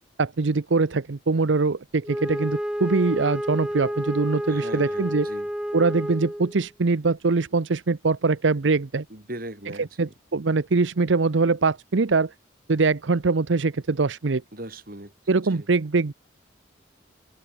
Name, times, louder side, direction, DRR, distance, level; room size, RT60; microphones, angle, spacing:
voice 1, 0.2-5.3 5.7-9.0 10.0-12.3 12.7-14.4 15.3-16.1, right 3 dB, 80° right, 0.7 m, -23 dB
Wind instrument woodwind instrument, 2.0-6.6, equal, 5° right, 0.5 m, -30 dB
voice 2, 4.5-5.5 9.1-10.0 14.5-15.1 15.4-15.7, right 1 dB, 50° right, 5.1 m, -39 dB
head